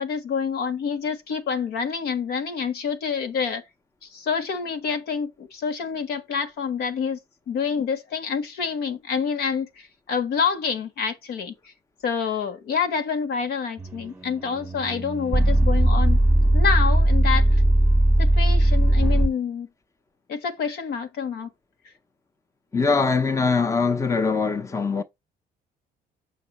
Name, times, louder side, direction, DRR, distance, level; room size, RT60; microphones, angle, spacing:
voice 1, 0.0-3.6 4.1-7.2 7.5-11.5 12.0-16.2 16.5-17.5 18.2-19.7 20.3-21.5, left 6 dB, 70° left, 1.5 m, -27 dB
sound 1, 13.8-19.3, right 1 dB, 10° right, 1.1 m, -19 dB
voice 2, 22.7-25.0, left 4 dB, 15° left, 0.7 m, -22 dB
7.5 x 5.4 x 3.0 m
cardioid pair, 110°, 17 cm